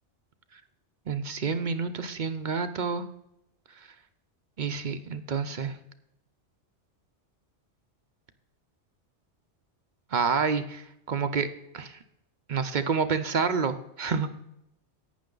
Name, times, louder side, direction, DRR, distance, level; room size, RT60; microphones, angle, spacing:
voice 1, 1.1-3.1 3.8-3.9 4.6-5.8 10.1-11.5 11.7-12.0 12.5-14.3, right 5 dB, 50° right, 9 dB, 0.7 m, -28 dB
11.5 x 8.8 x 3.8 m, 0.81 s
omnidirectional pair, 1.2 m